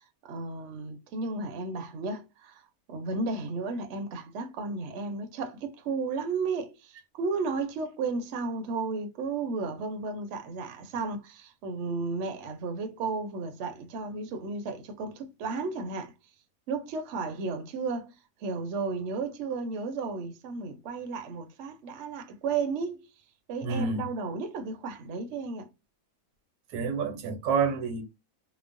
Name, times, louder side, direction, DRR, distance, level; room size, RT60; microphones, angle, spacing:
voice 1, 0.0-2.6 2.9-16.1 16.7-23.0 23.5-25.7, right 4 dB, 65° right, 0.8 m, -33 dB
voice 2, 23.6-24.1 26.7-28.0, right 5 dB, 80° right, 1.1 m, -28 dB
3.0 x 2.0 x 2.4 m
omnidirectional pair, 1.6 m